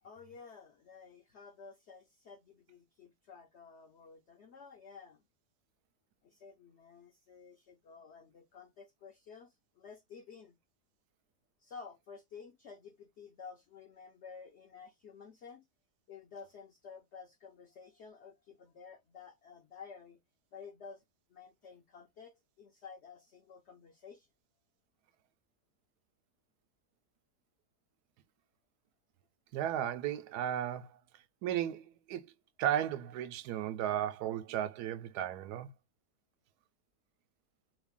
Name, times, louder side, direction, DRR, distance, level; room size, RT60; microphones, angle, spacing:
voice 1, 0.0-5.2 6.2-10.6 11.6-15.6 16.1-20.2 20.5-21.0 21.3-24.3, left 5 dB, 60° left, 0.7 m, -52 dB
voice 2, 29.5-31.0 31.4-32.2 32.6-35.7, right 11 dB, 75° right, 1.1 m, -34 dB
3.2 x 2.5 x 3.5 m
omnidirectional pair, 1.7 m